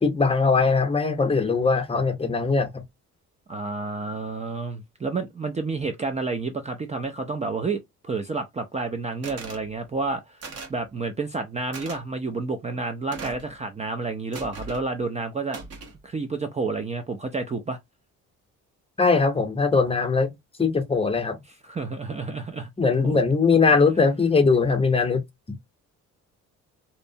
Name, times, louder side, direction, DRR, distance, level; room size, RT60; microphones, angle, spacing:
voice 1, 0.0-2.8 19.0-20.3 20.6-21.4 22.8-25.2, left 4 dB, 20° left, 0.7 m, -21 dB
voice 2, 3.5-15.6 16.0-17.8 21.6-22.7 23.0-23.1, right 3 dB, 25° right, 0.4 m, -30 dB
sound 1, 9.2-9.6 10.4-10.8 11.7-12.0 13.1-13.5 14.3-14.8 15.5-16.0, right 4 dB, 55° right, 1.1 m, -38 dB
2.8 x 2.1 x 2.6 m
cardioid pair, 90°, 30 cm